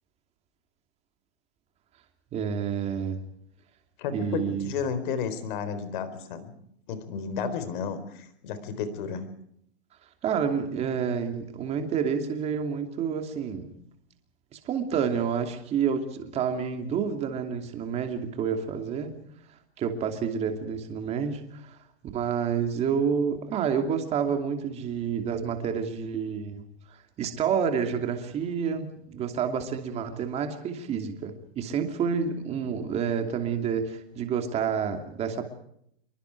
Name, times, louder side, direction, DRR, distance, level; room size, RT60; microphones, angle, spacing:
voice 1, 2.3-3.2 4.1-4.7 10.2-13.8 14.5-19.1 19.8-21.8 22.1-26.6 26.9-35.4, right 7 dB, 20° right, 6 dB, 2.8 m, -29 dB
voice 2, 4.0-6.5 6.9-9.3, left 6 dB, 50° left, 12 dB, 4.2 m, -32 dB
26.5 x 23.5 x 4.7 m, 0.72 s
supercardioid pair, 165°, 33 cm